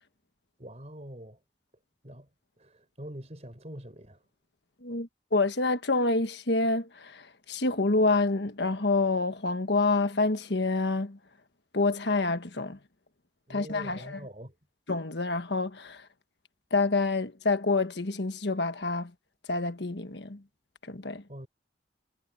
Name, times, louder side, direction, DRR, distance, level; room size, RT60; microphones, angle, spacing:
voice 1, 0.6-1.4 2.0-2.3 2.6-4.2 13.5-14.5 21.3-21.5, equal, 35° right, 4.9 m, -44 dB
voice 2, 4.8-11.2 11.7-12.8 13.5-14.2 14.9-16.1 16.7-19.1 19.5-20.4 20.8-21.2, left 3 dB, 70° left, 1.5 m, -27 dB
head